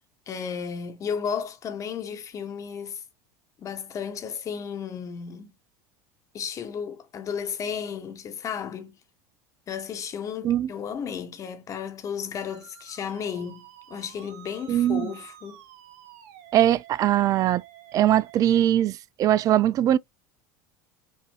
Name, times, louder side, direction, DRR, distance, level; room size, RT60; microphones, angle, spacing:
voice 1, 0.3-3.0 3.6-5.5 6.3-9.0 9.7-15.6, left 7 dB, 40° left, 1.3 m, -33 dB
Musical instrument, 12.3-18.6, right 12 dB, 65° right, 1.0 m, -50 dB
voice 2, 14.7-15.1 16.5-17.6 17.9-20.0, right 12 dB, 40° right, 0.3 m, -21 dB
5.6 x 2.7 x 2.3 m
hypercardioid pair, 80°, 9 cm